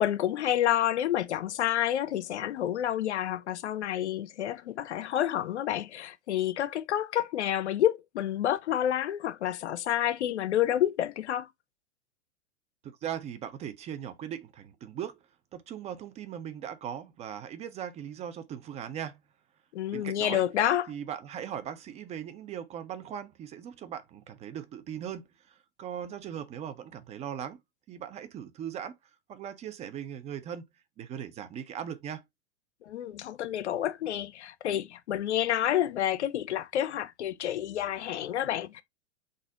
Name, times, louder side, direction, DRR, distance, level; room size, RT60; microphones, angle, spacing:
voice 1, 0.0-11.5 19.7-20.9 32.9-38.8, left 11 dB, 70° left, 0.6 m, -29 dB
voice 2, 12.8-15.2 15.5-19.2 19.9-20.4 20.9-27.6 27.9-28.9 29.3-30.7 31.0-32.2, right 9 dB, 20° right, 0.4 m, -39 dB
4.0 x 2.5 x 3.8 m
figure-of-eight pair, 100°, 35 cm